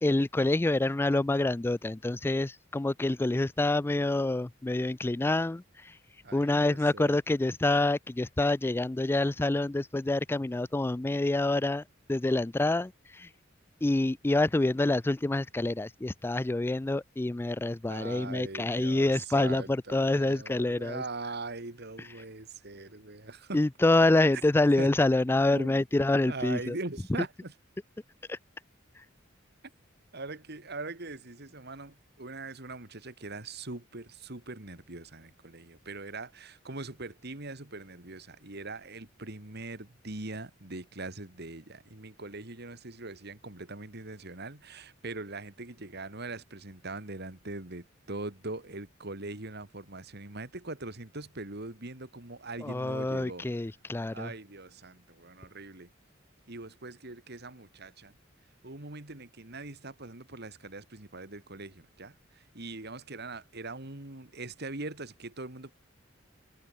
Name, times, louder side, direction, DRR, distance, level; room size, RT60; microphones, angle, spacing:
voice 1, 0.0-6.0 6.3-11.8 12.1-13.3 13.8-21.0 23.5-26.8 28.3-28.4 29.0-29.1 52.6-54.3, left 2 dB, 10° left, 0.3 m, -27 dB
voice 2, 6.2-7.2 17.9-23.6 24.8-24.9 25.5-25.8 26.3-27.5 30.1-53.5 54.1-55.9 56.5-58.1 58.6-65.7, right 2 dB, 55° right, 2.8 m, -41 dB
head